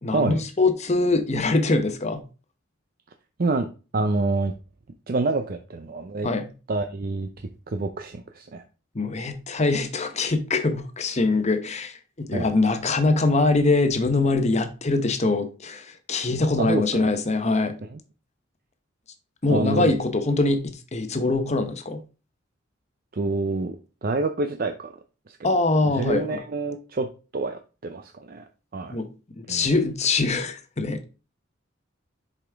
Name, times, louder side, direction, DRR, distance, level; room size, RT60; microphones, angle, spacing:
voice 1, 0.0-2.2 6.2-6.5 8.9-17.8 19.4-22.0 25.4-26.4 28.9-29.1 29.4-31.1, left 3 dB, 35° left, 0.9 m, -23 dB
voice 2, 3.9-4.5 5.1-6.3 6.7-7.3 7.7-8.6 12.3-12.5 16.6-17.0 17.9-18.0 19.5-19.9 23.1-23.8 24.0-24.9 25.3-25.5 25.9-27.1 27.3-28.4 28.7-29.0 29.5-29.7, right 3 dB, 50° right, 0.6 m, -27 dB
7.0 x 5.0 x 3.5 m
head